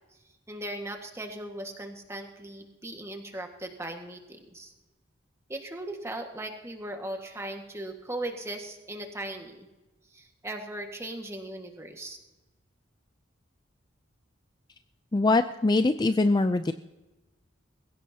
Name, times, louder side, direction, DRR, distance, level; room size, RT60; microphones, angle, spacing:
voice 1, 0.5-4.7 5.5-9.7 10.1-12.2, right 1 dB, 15° right, 4 dB, 1.6 m, -38 dB
voice 2, 15.1-16.7, left 2 dB, 20° left, 10 dB, 0.4 m, -23 dB
21.0 x 16.5 x 2.8 m, 1.1 s
head